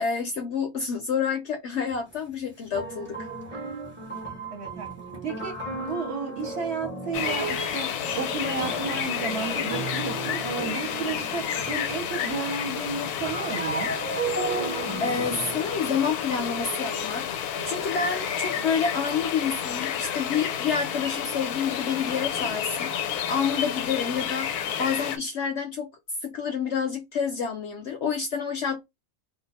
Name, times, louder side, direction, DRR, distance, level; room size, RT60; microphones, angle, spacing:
voice 1, 0.0-3.6 15.0-25.9 26.2-28.8, left 6 dB, 65° left, 0.7 m, -29 dB
sound 1, 1.8-1.9 2.7-12.3 12.5-16.4, right 3 dB, 10° right, 0.6 m, -35 dB
voice 2, 4.1-13.9, right 4 dB, 50° right, 1.0 m, -33 dB
sound 2, 7.1-25.2, left 8 dB, 85° left, 1.1 m, -30 dB
Telephone, 14.2-17.3 17.5-18.2 18.6-18.9, right 11 dB, 75° right, 1.0 m, -44 dB
2.5 x 2.3 x 4.0 m
omnidirectional pair, 1.6 m